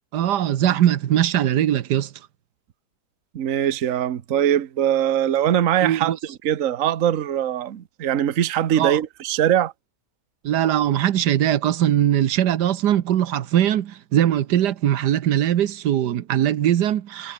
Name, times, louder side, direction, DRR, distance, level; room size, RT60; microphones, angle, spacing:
voice 1, 0.1-2.1 5.8-6.2 8.8-9.0 10.4-17.3, right 11 dB, 90° right, 1.5 m, -21 dB
voice 2, 3.3-9.7, right 10 dB, 55° right, 1.3 m, -22 dB
omnidirectional pair, 1.7 m